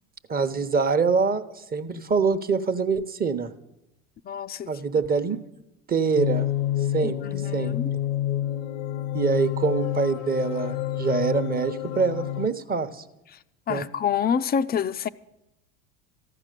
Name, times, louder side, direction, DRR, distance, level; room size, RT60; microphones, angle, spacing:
voice 1, 0.3-3.5 4.7-5.4 5.9-6.5 6.9-7.8 9.1-13.0 13.7-13.9, right 5 dB, 25° right, 1.0 m, -25 dB
voice 2, 4.2-4.7 7.0-7.9 13.7-15.1, left 7 dB, 25° left, 0.4 m, -27 dB
sound 1, 6.2-12.5, left 12 dB, 85° left, 0.8 m, -28 dB
14.5 x 11.0 x 6.7 m
hypercardioid pair, 85°, 38 cm